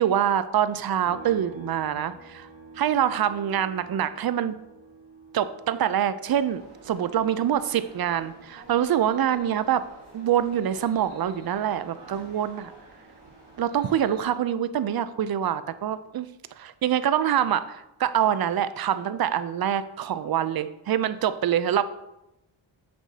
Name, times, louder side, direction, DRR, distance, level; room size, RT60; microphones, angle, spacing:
voice 1, 0.0-2.5 2.8-4.6 5.3-9.8 10.1-12.7 13.6-16.3 16.6-21.8, right 10 dB, 50° right, 13 dB, 0.6 m, -25 dB
sound 1, 1.0-14.6 14.9-17.1, right 3 dB, 65° right, 2.1 m, -51 dB
sound 2, 6.2-14.3, right 2 dB, 85° right, 2.5 m, -50 dB
7.9 x 6.1 x 2.8 m, 0.89 s
cardioid pair, 60°, 49 cm